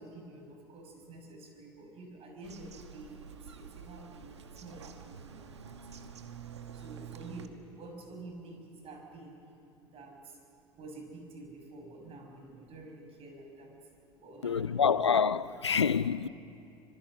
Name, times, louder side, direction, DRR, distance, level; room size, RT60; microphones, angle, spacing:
voice 1, 0.0-6.1 6.7-9.4 9.9-10.4 10.8-13.7 14.2-14.8, right 2 dB, 45° right, 6.5 m, -49 dB
Bird vocalization bird call bird song, 2.4-7.5, right 7 dB, 85° right, 1.3 m, -48 dB
voice 2, 14.4-16.3, left 6 dB, 90° left, 0.5 m, -27 dB
27.0 x 25.5 x 6.5 m
figure-of-eight pair, 70°, 14 cm